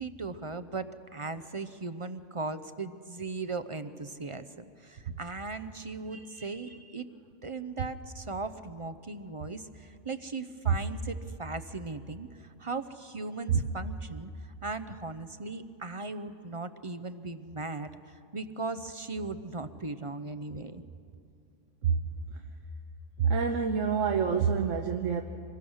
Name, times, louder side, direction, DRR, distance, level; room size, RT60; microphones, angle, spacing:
voice 1, 0.0-7.1 7.4-14.3 14.6-20.8, right 3 dB, 35° right, 11 dB, 0.6 m, -38 dB
voice 2, 6.1-6.6 10.7-10.8 13.5-13.6 21.8-22.0 22.3-22.4 23.2-25.2, right 6 dB, 80° right, 4 dB, 1.3 m, -27 dB
26.0 x 22.0 x 6.3 m, 2.3 s
omnidirectional pair, 1.3 m